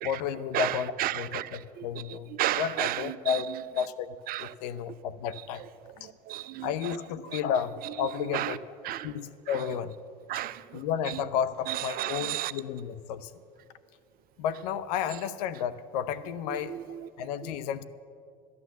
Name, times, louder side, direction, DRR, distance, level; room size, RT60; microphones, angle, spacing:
voice 1, 0.0-2.3 2.5-3.5 3.7-5.6 6.0-6.1 6.6-8.6 9.0-9.9 10.7-13.3 14.4-16.7 17.2-17.8, left 8 dB, 70° left, 0.7 m, -32 dB
voice 2, 0.5-3.4 4.3-4.5 6.0-7.0 7.3-7.4 8.2-8.6 8.8-9.1 9.5-9.6 10.3-11.2 11.7-12.5 16.5-17.1 17.4-17.5, right 14 dB, 45° right, 0.5 m, -33 dB
12.5 x 9.7 x 7.2 m
hypercardioid pair, 85°, 21 cm